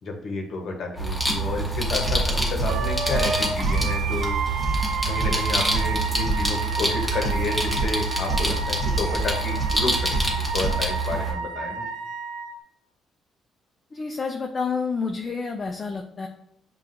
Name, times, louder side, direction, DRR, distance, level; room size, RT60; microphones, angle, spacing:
voice 1, 0.0-4.3 5.0-10.1 10.5-11.8, left 3 dB, 65° left, 2 dB, 0.8 m, -30 dB
sound 1, 1.0-11.3, right 2 dB, 5° left, 0.9 m, -25 dB
Wind instrument woodwind instrument, 2.7-12.5, right 4 dB, 85° right, 0.4 m, -31 dB
voice 2, 13.9-16.3, left 5 dB, 35° left, 4 dB, 0.3 m, -29 dB
5.5 x 2.3 x 2.5 m, 0.74 s
cardioid pair, 90°, 0 cm